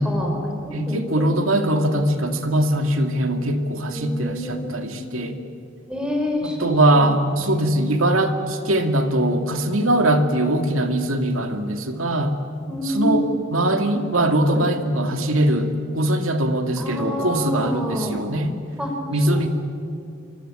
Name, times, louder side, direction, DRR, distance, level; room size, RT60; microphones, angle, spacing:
voice 1, 0.0-1.0 1.3-1.5 3.9-5.1 5.9-7.6 12.7-13.4 14.5-14.6 16.8-18.2 18.8-19.5, equal, 5° right, 1 dB, 5.3 m, -28 dB
voice 2, 0.7-5.4 6.4-12.4 12.8-18.5 19.1-19.5, right 1 dB, 75° right, 6 dB, 2.4 m, -21 dB
27.5 x 24.0 x 9.0 m, 2.7 s
head